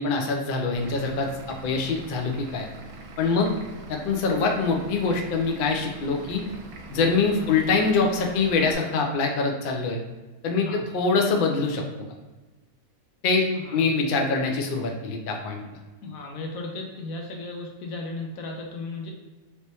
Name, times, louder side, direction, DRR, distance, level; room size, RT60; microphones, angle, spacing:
voice 1, 0.0-2.7 3.2-3.5 3.9-6.4 6.9-10.0 10.4-12.1 13.2-13.5 13.7-15.6, left 4 dB, 60° left, 1 dB, 0.5 m, -24 dB
Vehicle / Engine, 0.8-8.8, right 2 dB, 60° right, 0.7 m, -43 dB
voice 2, 3.3-3.6 7.4-7.5 10.5-10.8 13.5-14.0 16.0-19.1, left 2 dB, 80° left, 1 dB, 1.1 m, -36 dB
3.3 x 3.0 x 2.8 m, 1.2 s
omnidirectional pair, 1.5 m